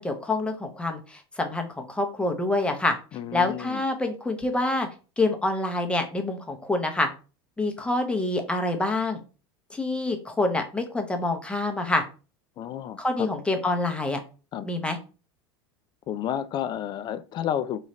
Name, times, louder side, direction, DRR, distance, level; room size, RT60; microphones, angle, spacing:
voice 1, 0.0-3.0 3.3-4.9 5.2-7.1 7.6-9.2 9.7-12.0 13.0-14.2 14.6-15.0, left 2 dB, 10° left, 0.7 m, -26 dB
voice 2, 3.1-3.8 12.6-13.3 14.5-14.7 16.1-17.8, left 10 dB, 35° left, 0.3 m, -31 dB
3.1 x 2.3 x 4.1 m
supercardioid pair, 115°, 13 cm